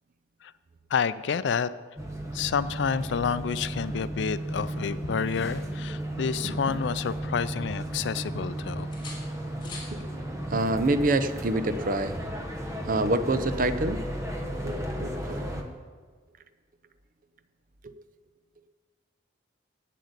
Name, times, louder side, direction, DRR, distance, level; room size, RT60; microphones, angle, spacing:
voice 1, 0.9-1.7 2.3-8.9, left 6 dB, 70° left, 16 dB, 0.4 m, -29 dB
sound 1, 2.0-15.6, right 1 dB, 15° right, 1.0 m, -34 dB
sound 2, 8.9-10.0 11.8-12.0, left 3 dB, 25° left, 3.4 m, -47 dB
voice 2, 10.5-12.2 12.8-14.0 14.6-15.4 17.8-17.9, right 2 dB, 45° right, 11 dB, 0.6 m, -27 dB
8.4 x 7.8 x 8.0 m, 1.5 s
head